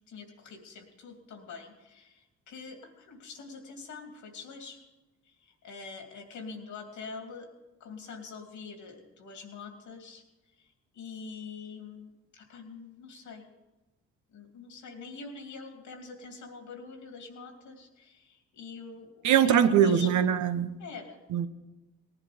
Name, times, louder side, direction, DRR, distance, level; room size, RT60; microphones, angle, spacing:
voice 1, 0.1-4.8 5.2-7.5 7.8-10.2 10.6-10.7 10.9-13.5 14.3-20.1 20.8-21.2, left 4 dB, 85° left, 3 dB, 2.6 m, -45 dB
voice 2, 19.2-20.8 21.3-21.5, right 9 dB, 80° right, 10 dB, 0.9 m, -22 dB
18.5 x 11.0 x 5.1 m, 1.1 s
cardioid pair, 80°, 29 cm